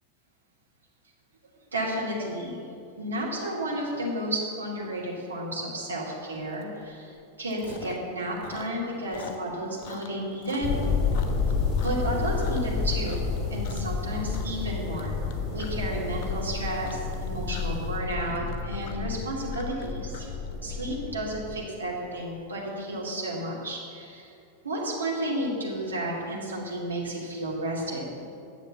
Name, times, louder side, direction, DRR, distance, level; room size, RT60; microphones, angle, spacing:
voice 1, 1.7-2.6 3.0-7.1 7.4-10.7 11.8-15.2 15.5-20.3 20.6-24.3 24.6-28.0, right 1 dB, 75° right, -4 dB, 2.8 m, -32 dB
Chewing mastication, 6.6-6.8 7.1-8.1 8.4-12.7 13.0-13.4 13.6-14.0 14.3-20.8, left 6 dB, 40° left, 1.0 m, -45 dB
sound 1, 10.6-21.6, left 4 dB, 10° left, 2.9 m, -30 dB
10.5 x 7.3 x 7.1 m, 2.5 s
figure-of-eight pair, 90°, 0 cm